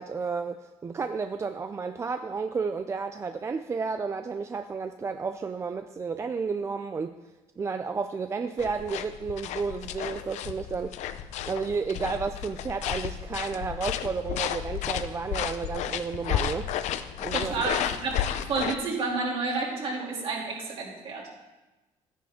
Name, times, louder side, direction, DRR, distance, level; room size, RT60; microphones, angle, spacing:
voice 1, 0.0-7.2 7.6-10.9 11.5-16.7 17.2-17.5, right 5 dB, 25° right, 8 dB, 0.4 m, -32 dB
sound 1, 8.6-18.7, left 10 dB, 80° left, 0.6 m, -32 dB
voice 2, 17.3-21.3, right 4 dB, 50° right, -2 dB, 2.9 m, -30 dB
13.5 x 10.0 x 3.7 m, 1.1 s
cardioid pair, 145°, 12 cm